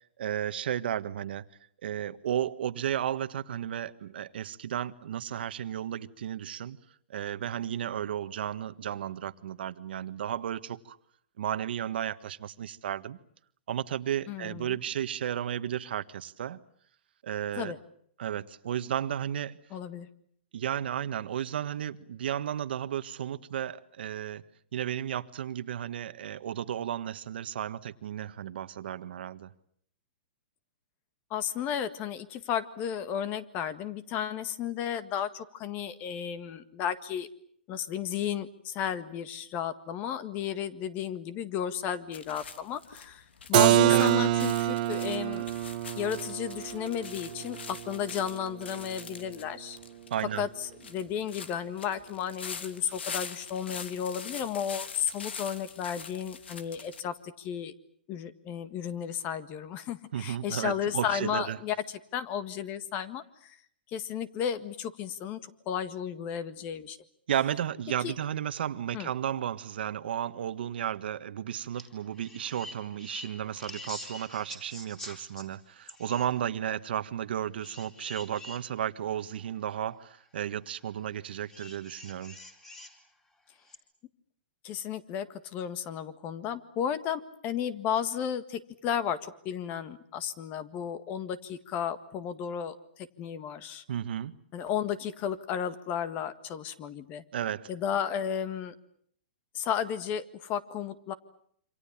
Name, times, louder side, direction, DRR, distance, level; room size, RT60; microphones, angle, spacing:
voice 1, 0.2-1.4 1.8-6.8 7.1-11.0 11.4-13.2 13.7-16.6 17.2-17.8 18.2-19.6 20.5-24.4 24.7-29.5 43.9-44.1 50.1-50.5 60.1-61.6 67.3-82.4 93.9-94.4 97.3-97.7, right 10 dB, 70° right, 1.5 m, -33 dB
voice 2, 14.3-14.8 17.6-17.8 19.7-20.1 31.3-37.3 37.7-45.4 45.9-49.8 50.3-57.7 58.1-63.6 63.9-67.0 68.0-68.1 68.9-69.1 84.6-93.8 94.5-97.2 97.7-98.7 99.5-101.1, left 9 dB, 30° left, 1.7 m, -33 dB
sound 1, 42.1-57.0, left 6 dB, 85° left, 2.8 m, -44 dB
Keyboard (musical), 43.5-49.1, right 15 dB, 45° right, 1.4 m, -27 dB
sound 2, 71.7-71.9 72.1-75.5 75.9-76.3 77.6-78.6 79.4-79.5 81.5-83.0 83.7-83.8, left 1 dB, 10° left, 4.2 m, -45 dB
27.5 x 26.0 x 7.3 m
hypercardioid pair, 150°, 6 cm